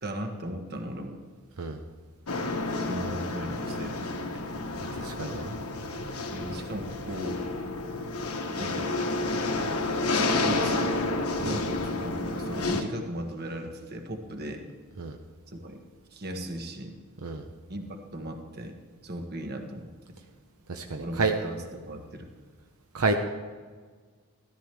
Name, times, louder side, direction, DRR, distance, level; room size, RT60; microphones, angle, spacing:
voice 1, 0.0-1.2 2.8-4.4 6.3-7.4 8.6-9.0 10.3-11.0 11.4-14.6 15.5-15.8 16.1-17.0 17.7-18.8 19.0-20.2 21.0-22.3, right 1 dB, 45° right, 4 dB, 1.4 m, -37 dB
sound 1, 2.3-12.8, left 2 dB, 85° left, 1.3 m, -30 dB
voice 2, 5.0-5.5 11.4-11.6 15.0-15.2 17.2-17.4 20.7-21.3 22.9-23.1, right 3 dB, 75° right, 4 dB, 0.8 m, -29 dB
14.5 x 13.5 x 3.5 m, 1.5 s
head